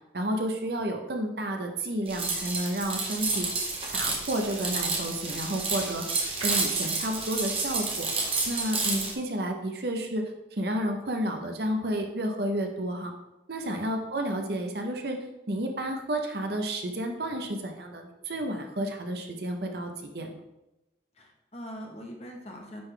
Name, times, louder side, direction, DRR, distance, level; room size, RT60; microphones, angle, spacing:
voice 1, 0.1-3.5 3.9-6.0 6.4-8.1 8.5-10.3 10.6-13.1 13.5-15.2 15.5-20.3, right 1 dB, 60° right, 4 dB, 0.8 m, -31 dB
sound 1, 2.1-9.1, right 3 dB, 30° right, 1.1 m, -30 dB
voice 2, 21.2-22.8, equal, 35° left, 0 dB, 1.0 m, -42 dB
9.4 x 3.9 x 3.3 m, 0.94 s
head